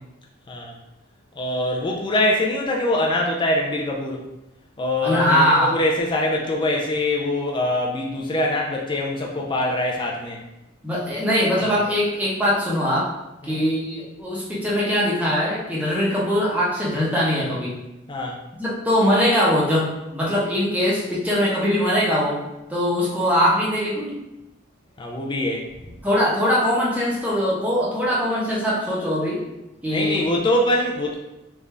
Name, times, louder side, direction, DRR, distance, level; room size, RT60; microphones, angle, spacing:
voice 1, 1.4-4.2 4.8-10.4 13.4-13.6 18.1-18.4 25.0-25.6 29.9-31.1, left 1 dB, 25° left, -1 dB, 0.4 m, -23 dB
voice 2, 5.0-5.7 10.8-13.1 13.4-17.7 18.6-22.4 22.7-24.2 26.0-29.4 29.8-30.2, equal, 5° right, -6 dB, 0.8 m, -21 dB
3.4 x 2.5 x 3.2 m, 0.94 s
head